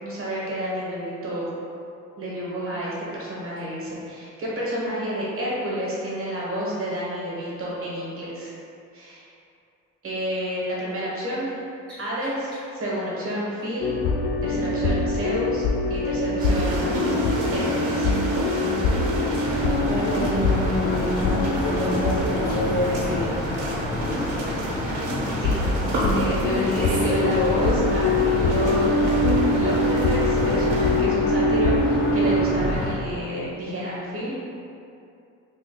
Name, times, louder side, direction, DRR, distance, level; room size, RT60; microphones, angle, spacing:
voice 1, 0.0-1.5 2.2-8.5 8.9-9.3 10.0-11.6 12.0-13.9 14.4-15.6 15.9-16.9 17.5-18.1 25.3-25.5 26.0-29.0 29.5-34.3, equal, 45° right, -6 dB, 1.1 m, -30 dB
sound 1, 13.8-24.0 24.2-24.4 25.2-32.4, left 2 dB, 65° left, 0.4 m, -24 dB
sound 2, 16.4-31.0, right 1 dB, 85° right, 0.7 m, -30 dB
sound 3, 19.4-32.9, left 1 dB, 40° left, 0.8 m, -30 dB
voice 2, 19.9-23.4 26.7-27.7, equal, 5° left, -8 dB, 0.5 m, -28 dB
3.6 x 3.3 x 2.2 m, 2.6 s
cardioid pair, 90°, 30 cm